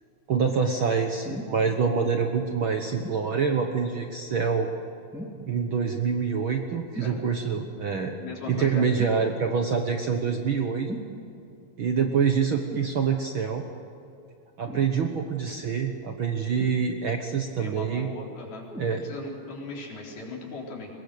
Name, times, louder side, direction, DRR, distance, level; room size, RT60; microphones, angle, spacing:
voice 1, 0.3-4.7 5.5-8.2 8.5-10.9 11.8-13.7 14.6-18.1 18.8-19.0, right 6 dB, 80° right, 4 dB, 1.1 m, -26 dB
sound 1, 1.2-1.6 3.0-3.2 5.1-5.5 6.9-7.2 9.0-9.2 10.9-11.1 12.7-12.9 14.6-14.9 16.6-17.2 18.7-19.0 19.8-19.9, right 1 dB, ahead, 1.8 m, -38 dB
voice 2, 8.2-8.8 17.6-18.6 19.0-20.9, left 3 dB, 80° left, -3 dB, 5.9 m, -38 dB
23.5 x 21.0 x 6.8 m, 2.6 s
omnidirectional pair, 4.3 m